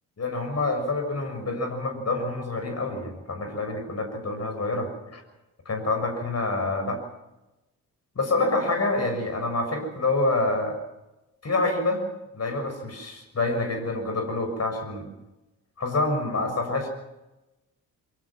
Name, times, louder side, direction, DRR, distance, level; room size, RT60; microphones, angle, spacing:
voice 1, 0.2-5.2 5.6-7.0 8.1-10.8 11.4-12.0 12.3-15.1 15.8-16.9, left 2 dB, 35° left, 5 dB, 6.6 m, -27 dB
24.0 x 23.5 x 5.9 m, 0.97 s
figure-of-eight pair, 40°, 46 cm